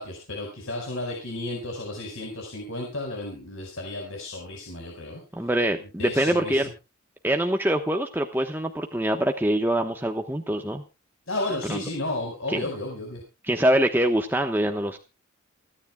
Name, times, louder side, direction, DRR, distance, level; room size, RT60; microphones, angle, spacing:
voice 1, 0.0-5.2 5.8-6.7 11.3-13.2, left 2 dB, 70° left, 0 dB, 4.9 m, -33 dB
voice 2, 5.3-6.7 7.2-10.8 11.7-11.8 12.5-12.6 13.4-15.0, right 1 dB, 10° right, 4 dB, 1.0 m, -24 dB
28.0 x 10.0 x 2.2 m, 0.29 s
head